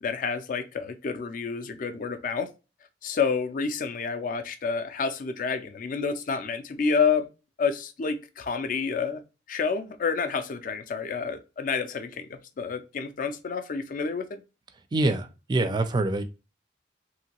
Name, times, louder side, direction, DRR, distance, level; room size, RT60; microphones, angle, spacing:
voice 1, 0.0-2.5 3.0-7.3 7.6-9.2 9.5-14.4, left 5 dB, 50° left, 0.4 m, -29 dB
voice 2, 14.9-16.2, right 2 dB, 25° right, 0.3 m, -25 dB
2.9 x 2.7 x 2.8 m
head